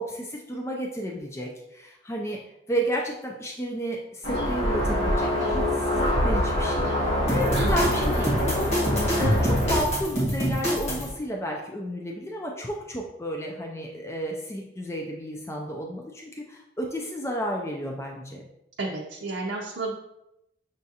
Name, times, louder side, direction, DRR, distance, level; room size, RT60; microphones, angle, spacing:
voice 1, 0.0-2.4 2.7-18.4, equal, 15° left, 0 dB, 0.4 m, -32 dB
sound 1, 4.2-9.8, equal, 85° left, 1.5 m, -25 dB
sound 2, 7.3-11.1, equal, 40° left, 1.3 m, -26 dB
voice 2, 18.8-19.9, right 2 dB, 90° right, -2 dB, 0.5 m, -31 dB
6.4 x 2.4 x 2.7 m, 0.85 s
head